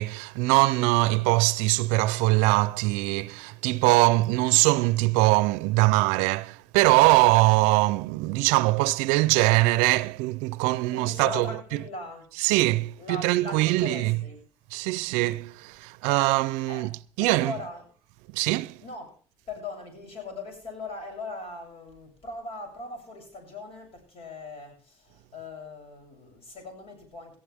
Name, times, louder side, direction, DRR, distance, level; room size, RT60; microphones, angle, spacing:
voice 1, 0.0-11.8 12.4-14.2 14.7-16.9 17.2-17.5 18.3-18.8, right 21 dB, 85° right, 0.6 m, -22 dB
voice 2, 10.9-12.3 13.0-14.4 16.1-16.9 17.2-17.9 18.8-19.1 19.5-27.4, left 3 dB, 55° left, 7.6 m, -40 dB
18.0 x 14.0 x 3.5 m
supercardioid pair, 75°, 12 cm